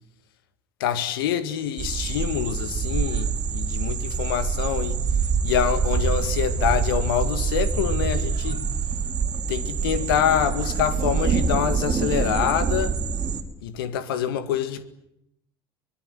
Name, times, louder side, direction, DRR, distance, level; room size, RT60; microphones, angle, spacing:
voice 1, 0.8-5.0 5.4-8.6 9.5-13.0 13.6-14.8, left 9 dB, 75° left, 2.0 m, -26 dB
sound 1, 1.8-13.4, right 5 dB, 35° right, 3.1 m, -25 dB
24.5 x 20.5 x 9.3 m
figure-of-eight pair, 60°, 12 cm